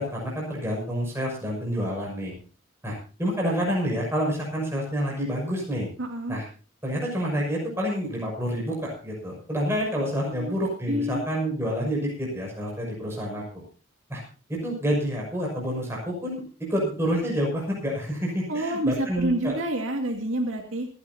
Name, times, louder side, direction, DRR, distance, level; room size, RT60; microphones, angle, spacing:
voice 1, 0.0-2.3 2.8-5.9 6.3-6.4 6.8-13.6 14.1-14.2 14.5-19.5, equal, 10° right, -2 dB, 6.3 m, -28 dB
voice 2, 6.0-6.4 10.2-10.5 10.9-11.2 18.5-20.9, right 1 dB, 75° right, 2 dB, 2.3 m, -28 dB
27.0 x 11.0 x 2.8 m, 0.38 s
head